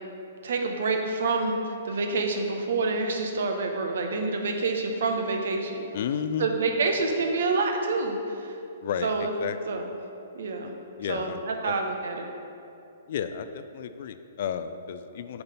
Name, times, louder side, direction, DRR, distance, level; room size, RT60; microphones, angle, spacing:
voice 1, 0.4-5.8 6.4-8.6 9.0-9.3 9.7-9.9 10.3-10.7 11.1-12.3, right 3 dB, 65° right, 3 dB, 0.9 m, -27 dB
voice 2, 5.9-6.5 8.8-9.8 10.6-10.7 11.0-11.4 11.7-11.8 13.1-15.4, left 8 dB, 55° left, 10 dB, 0.4 m, -32 dB
6.9 x 4.1 x 5.3 m, 2.6 s
hypercardioid pair, 120°, 0 cm